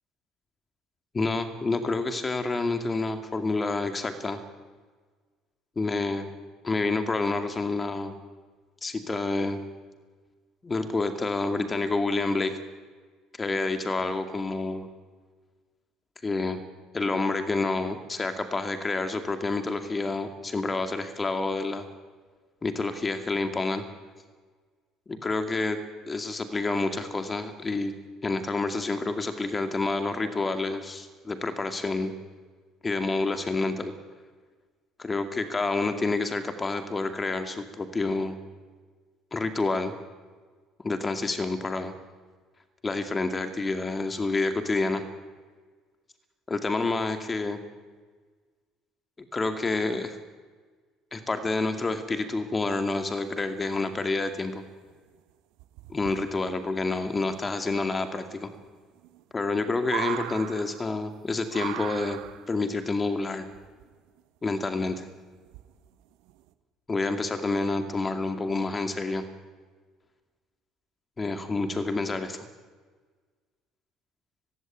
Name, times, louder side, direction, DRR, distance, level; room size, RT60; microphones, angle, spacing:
voice 1, 1.1-4.4 5.8-6.3 6.6-8.1 8.8-9.6 10.6-12.6 13.4-14.9 16.2-16.6 16.9-21.9 22.6-23.8 25.1-25.8 26.1-27.9 28.2-32.1 32.8-33.9 35.0-38.4 39.3-39.9 40.8-41.9 42.8-45.0 46.5-47.6 49.3-50.2 51.1-54.6 55.9-58.5 59.3-62.2 62.5-63.5 64.4-65.1 66.9-69.3 71.2-72.4, left 3 dB, 25° left, 8 dB, 2.3 m, -28 dB
sound 1, 54.5-54.6 54.9-55.2 55.6-56.2 57.7-57.8 58.0-58.1 58.6-58.7 59.0-61.2 61.5-62.6 63.5-64.2 64.9-65.0 65.5-65.9 66.3-66.5, right 15 dB, 70° right, 1.2 m, -37 dB
20.5 x 15.5 x 9.3 m, 1.4 s
hypercardioid pair, 60°, 0 cm